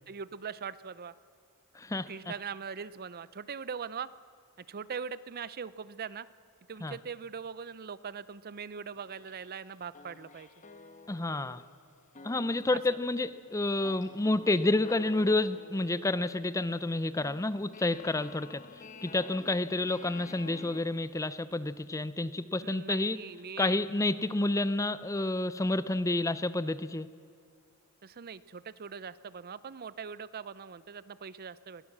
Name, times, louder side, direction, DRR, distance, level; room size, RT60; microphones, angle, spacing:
voice 1, 0.1-1.1 2.1-4.1 4.7-6.3 6.7-10.5 12.7-13.0 22.6-23.8 28.0-31.8, right 6 dB, 45° right, 17 dB, 0.5 m, -41 dB
voice 2, 1.7-2.3 6.8-7.0 11.1-11.6 12.2-18.6 19.0-23.2 23.6-27.1, left 2 dB, 15° left, 15 dB, 0.5 m, -29 dB
sound 1, 8.9-9.7 9.9-20.8, left 3 dB, 35° left, 1.2 m, -51 dB
21.5 x 17.0 x 7.3 m, 2.3 s
head